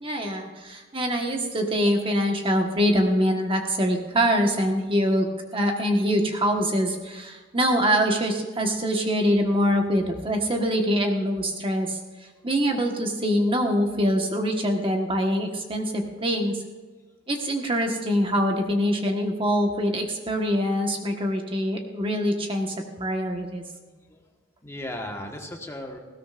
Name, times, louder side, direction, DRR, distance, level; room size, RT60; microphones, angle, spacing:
voice 1, 0.0-5.3 5.5-12.0 12.4-16.6 17.3-23.6, equal, 25° right, 2 dB, 1.4 m, -24 dB
voice 2, 23.9-24.3 24.6-26.0, left 1 dB, 15° left, 1 dB, 1.4 m, -36 dB
19.0 x 16.5 x 2.5 m, 1.3 s
head